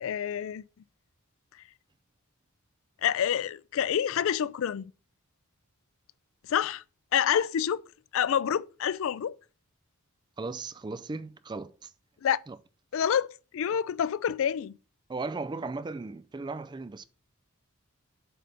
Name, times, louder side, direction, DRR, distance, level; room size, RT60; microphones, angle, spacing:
voice 1, 0.0-0.6 3.0-4.9 6.5-6.8 7.1-7.8 8.1-9.3 12.2-12.4 12.9-13.3 13.5-14.8, left 9 dB, 60° left, 0.3 m, -27 dB
voice 2, 10.4-11.9 12.5-12.6 15.1-17.1, right 3 dB, 20° right, 0.3 m, -36 dB
7.7 x 3.4 x 6.4 m
head